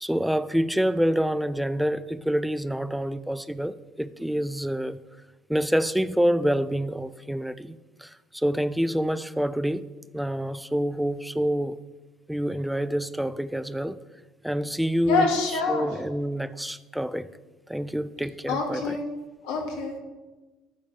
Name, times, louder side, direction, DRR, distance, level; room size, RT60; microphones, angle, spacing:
voice 1, 0.0-5.0 5.5-9.9 10.1-11.8 12.3-14.0 14.4-15.3 15.7-17.3 17.7-19.0, equal, 5° right, 14 dB, 0.6 m, -27 dB
voice 2, 15.1-15.9 18.5-19.0 19.4-20.0, left 3 dB, 70° left, 1 dB, 2.2 m, -26 dB
11.5 x 4.5 x 8.0 m, 1.2 s
hypercardioid pair, 60°, 0 cm